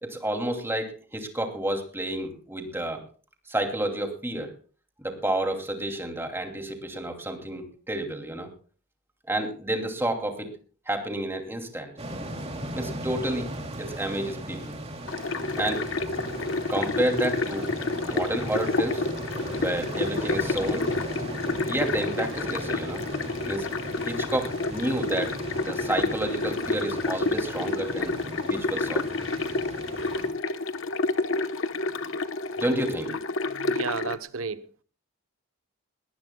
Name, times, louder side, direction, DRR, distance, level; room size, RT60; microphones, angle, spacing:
voice 1, 0.0-3.0 3.5-4.5 5.0-8.5 9.3-10.5 10.9-11.9 12.7-13.5 13.8-14.8 15.6-15.8 16.7-17.7 18.0-19.1 19.5-20.9 21.7-23.0 23.4-23.7 24.0-25.3 25.6-28.2 28.4-29.0 32.1-32.2 32.6-33.1, right 1 dB, 10° right, 2.7 m, -30 dB
sound 1, 12.0-30.3, right 1 dB, 30° right, 2.7 m, -37 dB
sound 2, 15.1-34.2, left 3 dB, 65° left, 1.0 m, -29 dB
voice 2, 33.5-34.8, right 5 dB, 85° right, 1.0 m, -33 dB
21.0 x 19.0 x 2.3 m
head